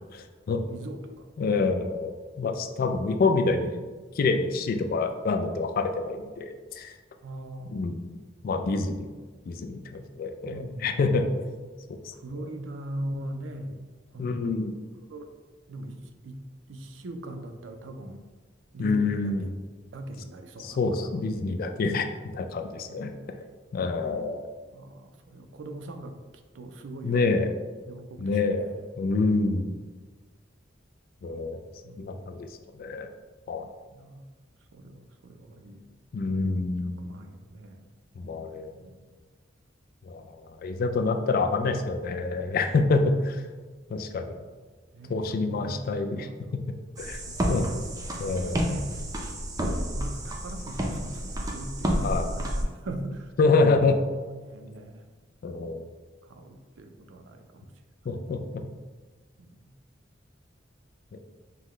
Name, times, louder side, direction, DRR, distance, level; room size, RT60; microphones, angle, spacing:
voice 1, 0.1-0.6 1.4-3.8 4.2-6.9 7.7-8.0 8.4-9.1 9.5-11.4 11.9-12.1 14.2-14.7 18.8-19.5 20.6-23.1 23.7-24.5 27.0-27.5 28.2-28.7 29.0-29.7 31.2-31.6 32.0-32.5 32.8-33.1 33.5-33.7 36.1-37.0 38.2-38.7 40.1-43.4 43.9-44.4 45.1-46.6 47.0-47.2 47.5-47.7 48.2-48.7 52.0-52.3 53.4-54.0 55.4-55.9 58.1-58.6 61.1-61.2, left 3 dB, 50° left, 6 dB, 0.3 m, -27 dB
voice 2, 0.7-1.3 7.2-7.8 10.4-11.3 12.2-13.8 14.1-14.6 15.1-15.3 15.7-16.4 16.7-18.2 18.7-19.2 19.9-21.2 22.9-23.4 24.1-24.2 24.7-26.2 26.5-27.4 27.9-28.8 29.4-29.8 31.8-32.3 33.9-34.2 34.7-35.8 36.4-37.8 38.8-39.1 44.9-45.8 46.2-46.6 47.0-47.9 48.6-49.0 49.9-53.3 54.4-55.0 55.5-55.7 56.2-57.7 58.6-58.7 59.4-59.5, right 1 dB, 85° right, 7 dB, 0.4 m, -41 dB
sound 1, 47.0-52.6, equal, 20° right, 0.5 m, -30 dB
5.5 x 2.2 x 3.1 m, 1.4 s
head